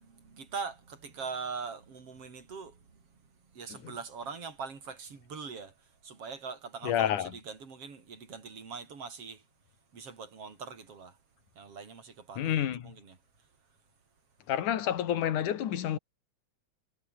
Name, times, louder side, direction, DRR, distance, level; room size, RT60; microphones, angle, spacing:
voice 1, 0.0-9.5 9.9-11.2 11.5-13.5, right 5 dB, 50° right, 4.9 m, -42 dB
voice 2, 6.8-7.3 12.4-12.9 14.5-16.0, left 10 dB, 90° left, 3.2 m, -29 dB
omnidirectional pair, 3.4 m